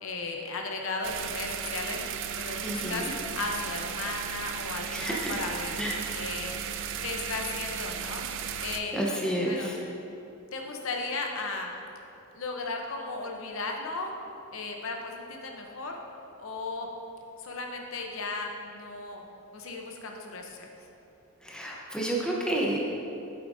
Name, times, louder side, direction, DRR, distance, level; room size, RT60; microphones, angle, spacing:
voice 1, 0.0-2.0 2.3-3.1 3.3-5.7 6.1-6.5 7.0-8.3 8.6-8.9 9.5-9.7 10.5-11.7 12.3-14.1 14.5-15.9 16.4-16.9 17.4-19.2 19.5-20.7, left 3 dB, 65° left, 2 dB, 0.8 m, -35 dB
sound 1, 1.0-8.8, right 8 dB, 60° right, 0.4 m, -35 dB
voice 2, 2.6-3.1 4.9-5.4 5.8-6.0 8.9-9.8 21.4-22.8, right 1 dB, 5° left, -3 dB, 0.8 m, -30 dB
8.8 x 8.1 x 2.6 m, 2.8 s
head